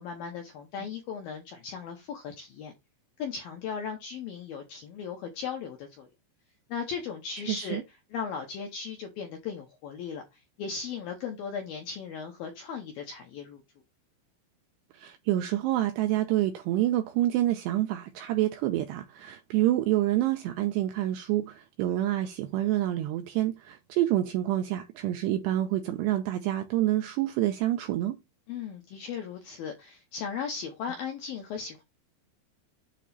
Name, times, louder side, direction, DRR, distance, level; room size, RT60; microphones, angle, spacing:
voice 1, 0.0-2.7 3.2-6.1 6.7-7.8 8.1-13.6 28.5-31.8, left 6 dB, 75° left, 2.1 m, -37 dB
voice 2, 7.5-7.8 14.9-28.2, right 14 dB, 85° right, 2.5 m, -27 dB
8.3 x 3.0 x 5.8 m
omnidirectional pair, 5.6 m